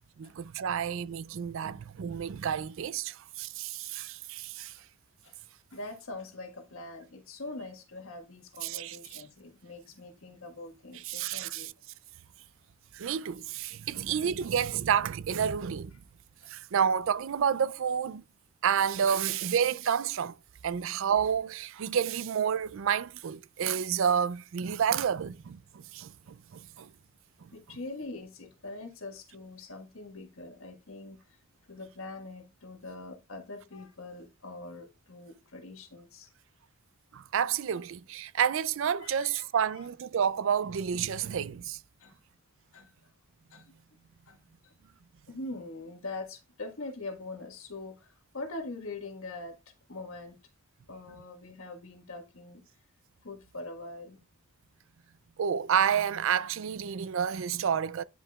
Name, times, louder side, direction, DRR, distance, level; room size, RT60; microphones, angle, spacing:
voice 1, 0.2-4.8 8.6-9.2 11.1-11.7 12.9-16.0 16.5-18.2 18.6-20.4 20.6-26.9 37.1-41.8 55.4-58.0, right 8 dB, 60° right, 0.4 m, -30 dB
voice 2, 5.7-11.7 13.0-13.1 13.9-14.0 16.4-16.5 27.5-31.4 31.7-36.3 39.0-39.5 39.8-39.9 42.0-42.2 42.7-42.9 43.5-43.7 44.2-44.4 44.6-44.7 45.3-49.6 49.9-50.4 50.9-52.6 53.2-54.2, left 2 dB, 65° left, 1.6 m, -43 dB
10.0 x 5.0 x 2.3 m
head